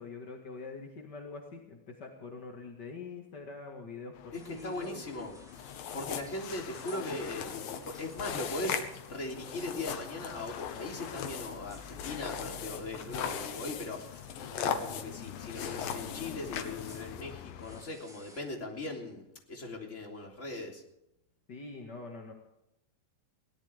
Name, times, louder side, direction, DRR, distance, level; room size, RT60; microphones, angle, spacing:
voice 1, 0.0-5.0 21.5-22.3, left 4 dB, 45° left, 1 dB, 1.3 m, -44 dB
sound 1, 4.1-17.8, left 10 dB, 90° left, 3.1 m, -49 dB
voice 2, 4.3-5.3 5.9-14.1 14.6-20.8, left 2 dB, 20° left, 0 dB, 3.1 m, -39 dB
sound 2, 4.3-18.4, equal, ahead, 1.9 m, -59 dB
sound 3, 5.5-17.2, left 7 dB, 65° left, 2.8 m, -39 dB
22.5 x 18.0 x 3.5 m, 0.84 s
omnidirectional pair, 4.9 m